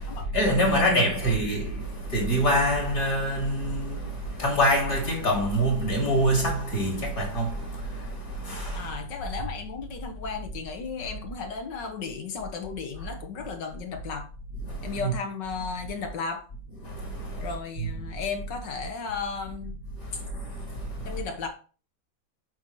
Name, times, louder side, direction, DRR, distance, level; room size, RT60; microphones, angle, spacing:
voice 1, 0.0-8.9 13.0-13.1 14.6-15.1 16.8-18.0 20.0-21.2, equal, 50° left, 2.5 m, -26 dB
voice 2, 0.7-1.3 8.8-14.3 14.8-16.4 17.4-19.8 21.1-21.5, left 5 dB, 75° left, 1.8 m, -35 dB
7.9 x 5.5 x 3.1 m
omnidirectional pair, 2.0 m